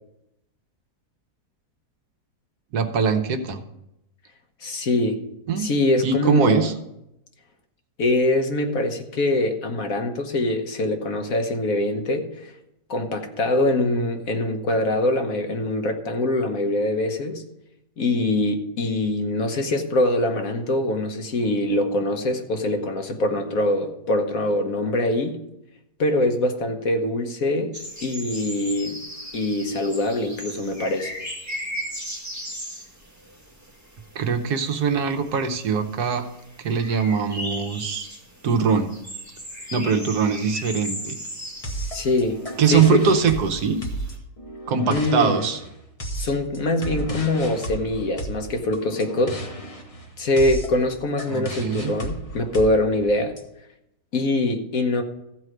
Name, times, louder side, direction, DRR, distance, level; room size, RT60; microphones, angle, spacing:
voice 1, 2.7-3.6 5.5-5.7 6.0-6.7 34.1-36.2 36.6-38.1 38.4-38.9 39.7-41.2 42.6-43.8 44.7-45.6 51.3-51.9, right 6 dB, 70° right, 6 dB, 1.5 m, -22 dB
voice 2, 4.6-5.2 5.6-6.7 8.0-12.5 12.9-17.4 18.0-25.4 26.0-27.7 28.0-29.0 29.3-31.1 41.9-42.4 42.7-43.0 44.9-45.4 46.2-49.4 50.2-53.4 54.1-55.0, left 1 dB, 60° left, 5 dB, 1.5 m, -23 dB
sound 1, 27.7-44.2, equal, 10° right, 2.1 m, -38 dB
sound 2, 41.6-53.4, right 1 dB, 25° left, 1.2 m, -34 dB
14.5 x 4.8 x 7.8 m, 0.85 s
omnidirectional pair, 1.7 m